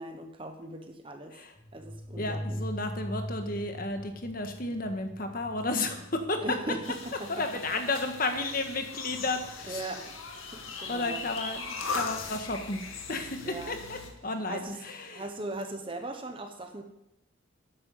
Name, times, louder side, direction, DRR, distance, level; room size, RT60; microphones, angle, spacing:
voice 1, 0.0-1.4 1.7-2.6 6.4-7.4 7.7-7.8 9.6-10.1 10.5-11.2 13.4-13.8 14.5-14.8 15.1-16.8, right 2 dB, 25° right, 5 dB, 1.1 m, -39 dB
sound 1, 1.6-10.0, equal, 15° left, 0.5 m, -42 dB
voice 2, 2.2-6.4 7.3-9.8 10.9-15.2, left 2 dB, 45° left, 6 dB, 1.6 m, -33 dB
sound 2, 6.8-14.1, left 4 dB, 85° left, 2.1 m, -39 dB
12.5 x 10.0 x 5.6 m, 0.86 s
head